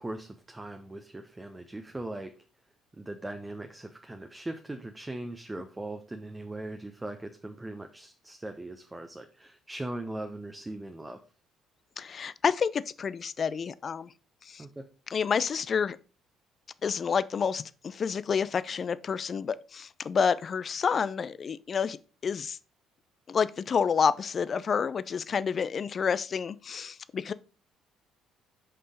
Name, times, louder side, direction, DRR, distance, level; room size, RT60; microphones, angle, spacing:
voice 1, 0.0-2.3 2.9-11.2 14.6-14.8, right 1 dB, 15° right, 0.9 m, -40 dB
voice 2, 12.0-14.1 14.5-14.6 15.1-16.0 16.8-22.0 22.2-22.6 23.3-27.3, left 6 dB, 40° left, 0.5 m, -29 dB
6.7 x 5.5 x 5.0 m
figure-of-eight pair, 50°, 0 cm